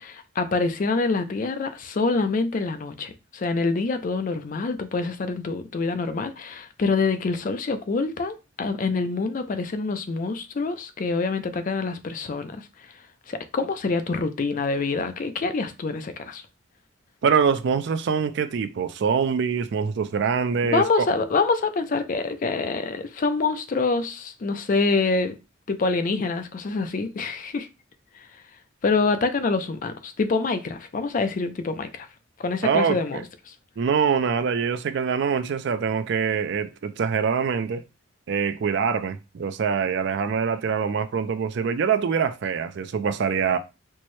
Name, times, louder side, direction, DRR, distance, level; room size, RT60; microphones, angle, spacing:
voice 1, 0.0-12.7 13.3-16.4 20.6-25.4 25.7-27.7 28.1-28.3 28.8-32.1 32.4-33.5, left 4 dB, 40° left, 0.4 m, -26 dB
voice 2, 17.2-21.1 32.6-33.2 33.8-37.8 38.3-43.6, right 6 dB, 55° right, 0.3 m, -24 dB
4.3 x 2.1 x 3.1 m
head